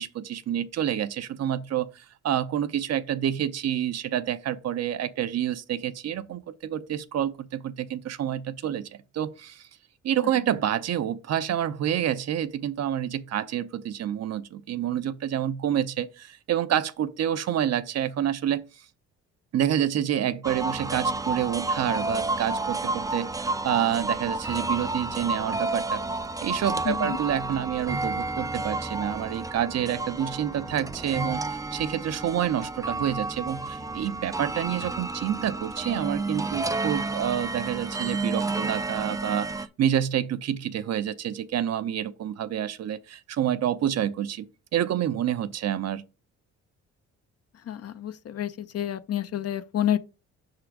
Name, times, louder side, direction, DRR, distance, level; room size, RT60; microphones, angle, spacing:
voice 1, 0.0-9.7 10.0-18.6 19.5-26.0 26.4-44.5 44.7-46.1, right 10 dB, 60° right, 0.6 m, -28 dB
sound 1, 20.4-39.7, right 2 dB, 10° right, 0.5 m, -31 dB
voice 2, 26.8-27.2 47.6-50.0, left 10 dB, 55° left, 0.6 m, -29 dB
5.8 x 3.8 x 4.6 m
cardioid pair, 90°, 30 cm